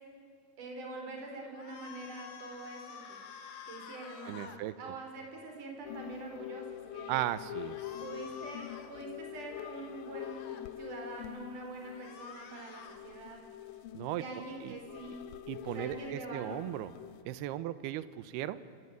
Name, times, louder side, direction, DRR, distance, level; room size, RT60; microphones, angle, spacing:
voice 1, 0.6-3.2 3.7-7.4 8.0-13.4 14.2-15.3 15.7-16.6, right 2 dB, 50° right, 2 dB, 5.5 m, -45 dB
sound 1, 1.5-4.6 7.7-8.9 10.0-10.6 11.8-13.0, left 7 dB, 55° left, 2.2 m, -49 dB
voice 2, 4.3-4.7 7.1-7.8 13.9-14.2 14.6-14.8 15.5-16.9 17.3-18.6, right 13 dB, 75° right, 15 dB, 2.7 m, -36 dB
sound 2, 5.8-17.2, left 13 dB, 80° left, 2.1 m, -45 dB
27.0 x 18.0 x 9.3 m, 2.4 s
omnidirectional pair, 5.0 m